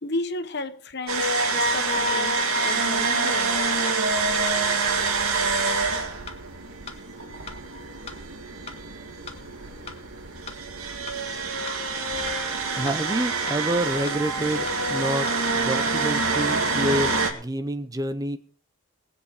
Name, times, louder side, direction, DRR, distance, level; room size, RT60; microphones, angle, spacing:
voice 1, 0.0-3.8, left 2 dB, 50° left, 1.2 m, -33 dB
sound 1, 1.1-17.3, right 3 dB, 85° right, 2.1 m, -26 dB
sound 2, 2.1-2.2 2.7-2.8 3.3-3.4 3.9-4.0 4.5-4.6 5.1-5.2 5.7-5.8 6.3-6.4 6.9-7.0 7.5-7.6 8.1-8.2 8.7-8.8 9.3-9.4 9.9-10.0 10.5-10.6 11.1-11.2 11.7-11.8 12.3-12.4 12.9-13.0 13.5-13.6 14.1-14.2 14.7-14.8 15.3-15.4 15.9-16.0, left 4 dB, 30° left, 1.5 m, -38 dB
voice 2, 12.7-18.4, right 1 dB, 15° right, 0.6 m, -28 dB
20.0 x 8.1 x 4.8 m
head